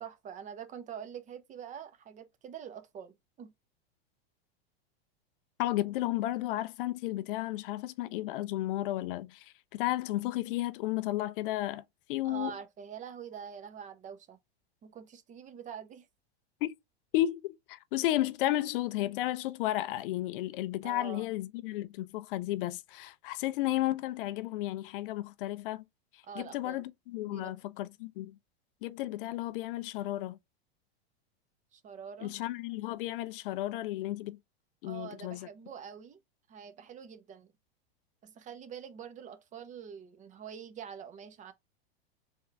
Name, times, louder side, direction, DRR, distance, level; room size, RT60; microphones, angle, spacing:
voice 1, 0.0-3.5 12.2-14.4 14.8-16.1 20.8-21.3 26.2-26.8 27.2-27.5 31.7-32.3 34.8-36.2 36.5-37.5 38.2-41.5, right 8 dB, 25° right, 0.7 m, -45 dB
voice 2, 5.6-11.8 12.1-12.5 16.6-16.7 17.1-25.8 26.1-28.3 28.8-30.4 32.2-34.4 34.8-35.5, left 15 dB, 60° left, 0.5 m, -33 dB
3.6 x 3.4 x 3.1 m
hypercardioid pair, 115°, 32 cm